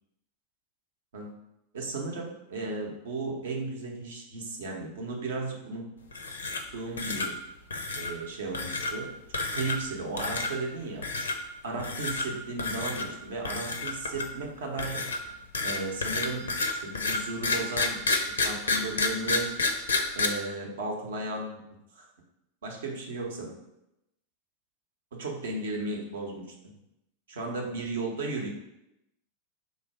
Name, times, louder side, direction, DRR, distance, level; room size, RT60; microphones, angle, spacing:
voice 1, 1.7-5.8 6.7-7.4 7.9-9.1 9.5-11.0 11.6-15.0 15.6-19.5 20.1-21.6 22.0-22.1 22.6-23.5 25.2-26.4 27.3-28.5, right 3 dB, 60° right, 0 dB, 0.7 m, -35 dB
sound 1, 6.1-6.7 7.0-7.3 7.7-8.1 8.5-8.9 9.3-9.9 10.2-10.5 11.0-11.3 11.8-12.3 12.6-13.1 13.4-14.4 14.8-20.3, left 3 dB, 70° left, 0.4 m, -29 dB
3.2 x 2.6 x 4.4 m, 0.89 s
figure-of-eight pair, 90°, 0 cm